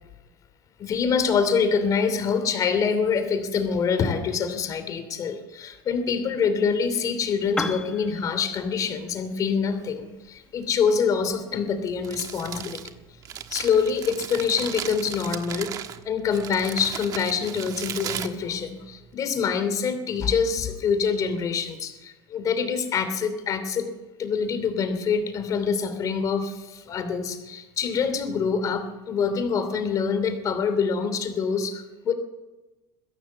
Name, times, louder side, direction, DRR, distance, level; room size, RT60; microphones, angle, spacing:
voice 1, 0.8-12.8 13.5-15.7 16.0-23.9 24.2-32.1, left 6 dB, 35° left, 9 dB, 2.8 m, -25 dB
Piano, 7.4-15.2, left 2 dB, 10° left, 1.5 m, -40 dB
Crumpling crinkling, 11.8-19.1, right 9 dB, 35° right, 1.4 m, -36 dB
22.5 x 16.0 x 7.3 m, 1.1 s
cardioid pair, 155°, 11 cm